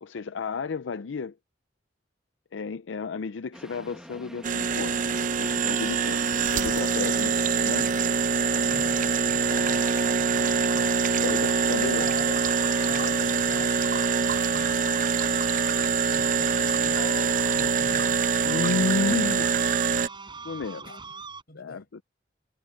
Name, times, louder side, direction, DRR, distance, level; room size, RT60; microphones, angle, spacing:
voice 1, 0.0-1.3 2.5-5.0 5.4-7.9 11.2-12.1 18.4-19.5 20.4-20.9 21.6-21.8, left 4 dB, 90° left, 0.5 m, -32 dB
sound 1, 3.5-11.4, equal, 5° right, 1.6 m, -46 dB
sound 2, 4.4-20.1, right 5 dB, 45° right, 0.7 m, -24 dB
sound 3, 5.9-21.4, right 4 dB, 25° right, 5.7 m, -44 dB
voice 2, 8.7-11.3 12.0-15.2 16.1-19.4 20.8-21.0 21.5-21.9, left 2 dB, 55° left, 7.6 m, -43 dB
head